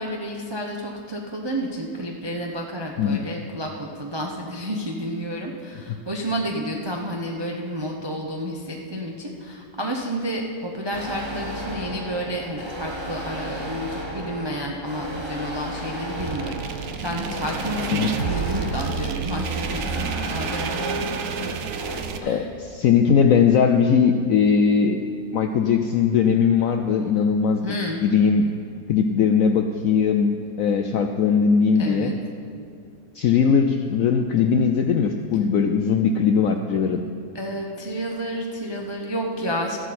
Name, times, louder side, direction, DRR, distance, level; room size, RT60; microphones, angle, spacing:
voice 1, 0.0-21.5 22.2-22.4 27.6-28.0 31.8-32.1 37.3-39.8, equal, 40° right, 0 dB, 0.3 m, -30 dB
sound 1, 10.9-22.0, equal, 20° right, 0.8 m, -34 dB
sound 2, 16.2-22.2, right 6 dB, 70° right, 0.7 m, -30 dB
voice 2, 22.2-25.0 25.3-28.5 28.9-32.1 33.1-37.0, left 6 dB, 75° left, 5 dB, 0.7 m, -20 dB
13.5 x 11.0 x 4.2 m, 2.3 s
omnidirectional pair, 1.9 m